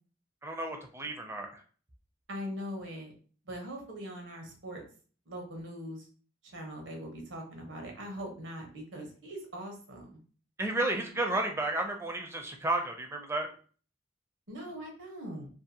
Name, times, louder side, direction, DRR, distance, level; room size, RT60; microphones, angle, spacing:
voice 1, 0.4-1.6 10.6-13.5, right 2 dB, 15° right, 4 dB, 0.4 m, -32 dB
voice 2, 2.3-3.1 3.4-4.8 5.3-6.0 6.5-10.2 14.5-15.5, equal, 90° right, 2 dB, 0.9 m, -41 dB
2.5 x 2.4 x 2.7 m, 0.42 s
head